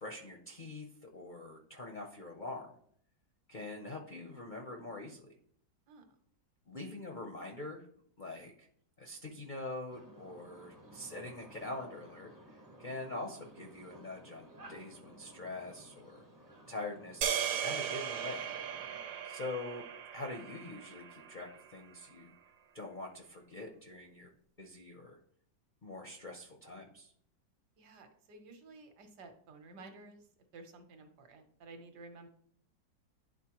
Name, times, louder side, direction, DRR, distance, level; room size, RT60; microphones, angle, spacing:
voice 1, 0.0-2.7 3.5-5.3 6.7-7.9 8.2-8.7 9.0-16.2 16.7-18.5 19.3-19.8 20.1-22.3 22.7-24.3 24.6-25.2 25.8-27.1, left 2 dB, 65° left, 2 dB, 0.4 m, -44 dB
sound 1, 9.9-19.0, right 1 dB, 25° right, 0.4 m, -56 dB
sound 2, 17.2-21.6, right 8 dB, 85° right, 1.4 m, -37 dB
voice 2, 18.9-19.3 27.8-30.2 30.5-32.3, right 3 dB, 65° right, 6 dB, 1.4 m, -53 dB
11.0 x 4.1 x 2.9 m, 0.63 s
omnidirectional pair, 2.0 m